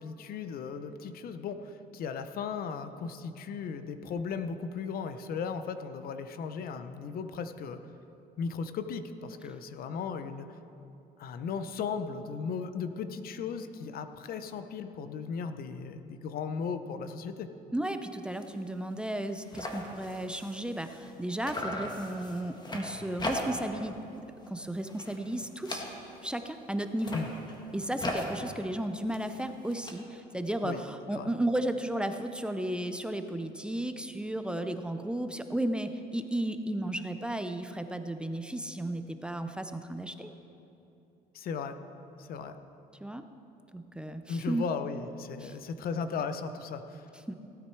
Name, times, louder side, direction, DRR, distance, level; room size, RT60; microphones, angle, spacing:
voice 1, 0.0-7.8 8.4-10.5 11.2-17.5 27.1-27.3 30.6-30.8 31.1-31.3 41.3-41.8 42.2-42.6 44.3-47.1, left 5 dB, 60° left, 10 dB, 0.7 m, -36 dB
voice 2, 17.7-24.1 24.5-25.8 26.2-27.2 27.7-40.3 43.0-43.2 43.7-44.7 45.4-45.6 47.3-47.4, right 1 dB, 5° right, 8 dB, 0.6 m, -34 dB
sound 1, 18.3-18.5 18.9-19.0 19.2-21.2 21.4-23.8 24.1-24.5 24.8-26.3 26.9-29.9, left 1 dB, 25° left, 1.6 m, -39 dB
16.5 x 9.4 x 4.6 m, 2.8 s
cardioid pair, 110°, 17 cm